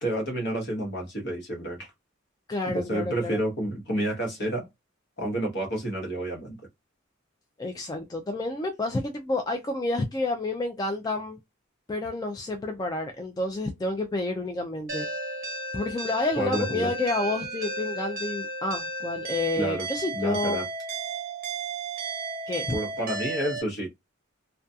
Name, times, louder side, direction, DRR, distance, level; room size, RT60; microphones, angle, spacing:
voice 1, 0.0-1.9 2.7-4.7 5.2-6.6 16.4-16.9 19.6-19.9 20.1-20.6 22.7-23.9, right 1 dB, 55° left, 1.0 m, -29 dB
voice 2, 2.5-3.4 7.6-11.4 11.9-15.1 15.7-20.6 22.5-22.8, left 2 dB, 20° left, 0.3 m, -29 dB
sound 1, 14.9-23.6, right 2 dB, 45° right, 0.8 m, -34 dB
2.7 x 2.3 x 2.3 m
head